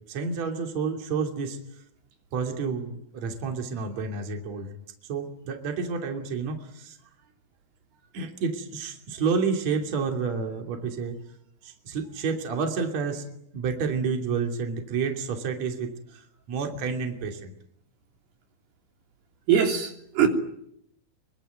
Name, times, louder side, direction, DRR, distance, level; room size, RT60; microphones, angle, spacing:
voice 1, 0.1-1.6 2.3-4.7 5.1-7.0 8.1-11.2 11.6-13.3 13.5-16.2 16.5-17.5, right 5 dB, 45° right, 4 dB, 3.9 m, -29 dB
voice 2, 19.5-20.3, right 8 dB, 85° right, 3 dB, 5.2 m, -22 dB
25.0 x 24.5 x 9.4 m, 0.74 s
omnidirectional pair, 4.4 m